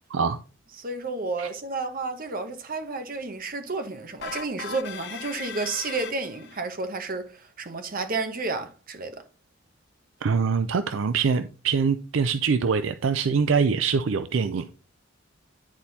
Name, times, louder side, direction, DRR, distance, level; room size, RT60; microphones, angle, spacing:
voice 1, 0.8-9.2, right 3 dB, 45° right, 1.2 m, -31 dB
sound 1, 4.2-6.6, left 7 dB, 60° left, 0.8 m, -38 dB
voice 2, 10.2-14.7, right 5 dB, 70° right, 0.5 m, -24 dB
9.9 x 4.3 x 4.1 m
head